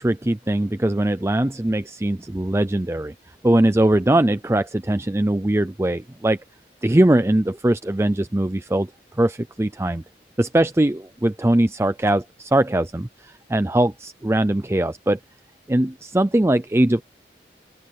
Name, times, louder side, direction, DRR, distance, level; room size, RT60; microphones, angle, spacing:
voice 1, 0.0-3.1 3.4-6.4 6.8-8.9 9.2-10.0 10.4-15.2 15.7-17.0, right 1 dB, 15° right, 0.4 m, -21 dB
open air
head